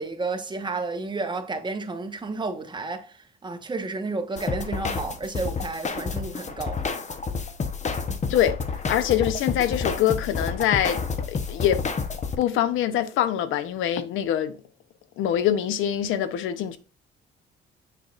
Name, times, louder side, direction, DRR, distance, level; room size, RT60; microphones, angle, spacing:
voice 1, 0.0-6.8, right 3 dB, 25° right, 1.3 m, -31 dB
sound 1, 4.4-12.4, left 5 dB, 35° left, 1.0 m, -29 dB
voice 2, 8.9-11.0 11.3-11.8 12.4-14.5 15.2-16.8, left 10 dB, 90° left, 0.8 m, -24 dB
6.7 x 5.9 x 2.5 m
cardioid pair, 90°, 20 cm